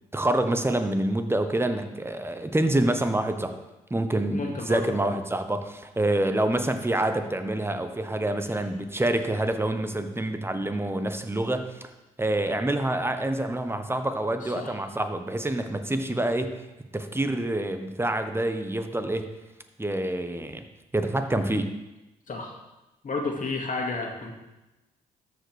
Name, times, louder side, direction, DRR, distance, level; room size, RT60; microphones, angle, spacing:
voice 1, 0.1-3.5 3.9-11.9 12.2-16.5 16.9-19.3 19.8-20.6 20.9-21.7, right 1 dB, 10° right, 7 dB, 1.2 m, -27 dB
voice 2, 4.3-5.1 14.4-14.7 22.3-22.6 23.0-24.3, left 3 dB, 45° left, 0 dB, 2.2 m, -32 dB
13.0 x 5.2 x 3.5 m, 1.0 s
hypercardioid pair, 40°, 19 cm